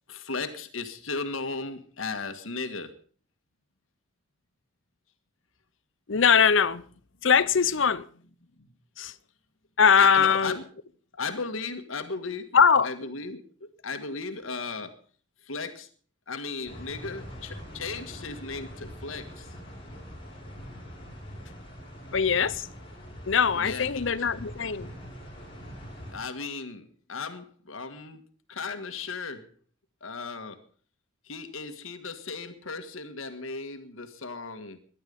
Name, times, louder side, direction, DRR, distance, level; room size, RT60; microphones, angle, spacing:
voice 1, 0.1-3.0 8.6-8.7 10.0-10.7 11.1-14.9 15.4-15.9 16.3-19.5 23.5-24.3 26.1-28.2 28.5-29.5 30.0-30.6 31.2-34.8, left 4 dB, 90° left, 1.6 m, -36 dB
voice 2, 6.1-6.8 7.2-8.1 9.0-9.1 9.8-10.6 12.5-12.9 22.1-22.7 23.3-24.9, left 6 dB, 70° left, 0.7 m, -21 dB
sound 1, 16.6-26.1, equal, 25° left, 5.2 m, -43 dB
18.0 x 11.5 x 5.3 m
head